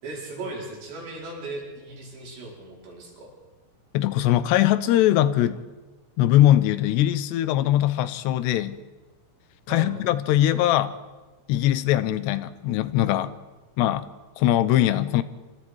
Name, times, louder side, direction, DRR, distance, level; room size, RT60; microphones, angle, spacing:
voice 1, 0.0-3.3 9.7-9.9, right 2 dB, 90° right, -2 dB, 7.2 m, -37 dB
voice 2, 3.9-5.6 6.2-8.8 9.7-10.9 11.5-13.3 13.8-14.1 14.4-15.2, left 13 dB, 80° left, 14 dB, 2.9 m, -21 dB
26.0 x 25.0 x 4.7 m, 1.2 s
omnidirectional pair, 5.0 m